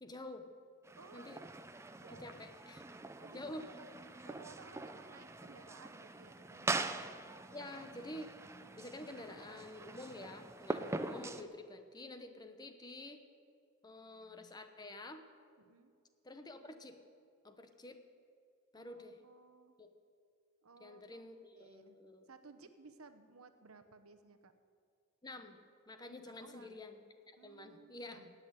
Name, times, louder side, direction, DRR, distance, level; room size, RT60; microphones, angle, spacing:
voice 1, 0.0-0.5 1.1-1.4 2.1-2.8 3.3-3.7 7.5-8.3 8.8-13.2 13.8-15.2 16.2-17.0 17.4-18.0 18.7-19.2 19.8-19.9 20.8-22.3 25.2-28.3, left 1 dB, 20° left, 7 dB, 0.9 m, -49 dB
sound 1, 0.8-11.4, right 2 dB, 15° right, 0.5 m, -43 dB
voice 2, 1.0-1.4 2.0-2.3 3.2-3.9 4.2-6.9 15.6-15.9 18.8-19.7 20.6-22.0 22.3-24.5 26.3-26.8 27.4-28.3, right 4 dB, 85° right, 9 dB, 1.0 m, -58 dB
17.5 x 6.6 x 9.4 m, 2.3 s
head